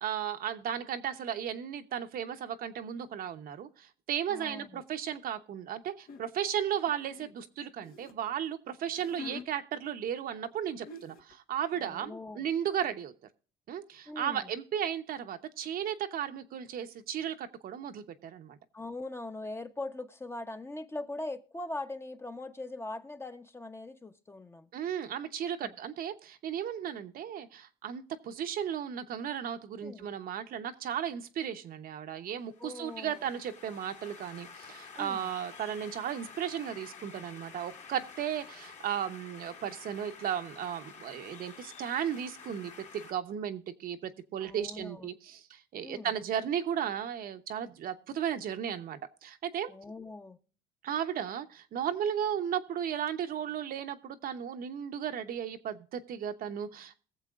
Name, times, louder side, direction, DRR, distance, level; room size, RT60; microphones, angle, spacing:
voice 1, 0.0-13.1 13.7-18.6 24.7-49.7 50.8-57.0, right 9 dB, 60° right, 1.0 m, -35 dB
voice 2, 4.3-4.8 11.8-12.5 14.1-14.5 18.7-24.7 25.6-25.7 29.8-30.1 32.6-33.3 35.0-35.3 44.4-45.1 45.8-46.1 49.7-50.4, left 2 dB, 15° left, 0.9 m, -41 dB
sound 1, 6.1-6.3 6.9-8.2 8.8-9.5 10.5-10.6 10.9-11.3, left 4 dB, 60° left, 1.3 m, -45 dB
sound 2, 32.4-43.1, left 5 dB, 45° left, 1.9 m, -50 dB
21.0 x 7.4 x 2.5 m
cardioid pair, 110°, 17 cm